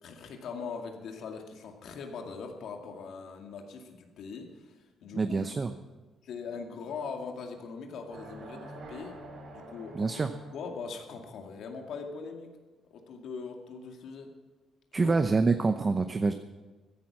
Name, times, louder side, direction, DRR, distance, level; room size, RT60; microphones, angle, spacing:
voice 1, 0.0-5.4 6.2-9.2 9.5-10.2 10.5-12.5 12.9-14.3 14.9-15.2, left 5 dB, 75° left, 4 dB, 2.2 m, -41 dB
voice 2, 5.2-5.7 9.9-10.3 14.9-16.3, right 4 dB, 30° right, 9 dB, 0.8 m, -26 dB
sound 1, 8.1-11.0, right 2 dB, 65° right, 3.9 m, -46 dB
14.0 x 10.5 x 7.3 m, 1.3 s
cardioid pair, 90°, 0 cm